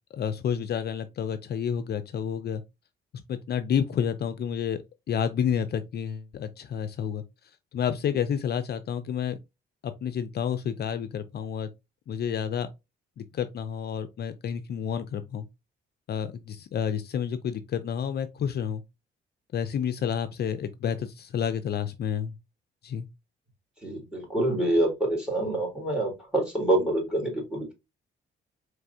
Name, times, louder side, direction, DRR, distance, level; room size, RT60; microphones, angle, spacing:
voice 1, 0.1-2.6 3.3-7.2 7.7-9.4 9.8-11.7 12.1-12.7 13.2-15.5 16.1-18.8 19.5-22.3 22.8-23.1, left 8 dB, 55° left, 0.5 m, -30 dB
voice 2, 23.8-27.7, right 1 dB, 5° right, 2.9 m, -26 dB
4.6 x 3.3 x 2.7 m
cardioid pair, 90°, 20 cm